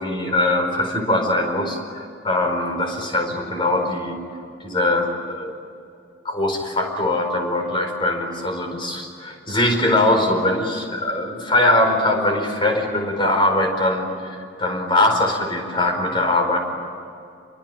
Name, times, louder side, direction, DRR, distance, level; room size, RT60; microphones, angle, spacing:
voice 1, 0.0-4.2 4.6-5.5 6.2-16.6, left 1 dB, 25° left, 4 dB, 4.7 m, -21 dB
27.5 x 23.5 x 9.0 m, 2.5 s
head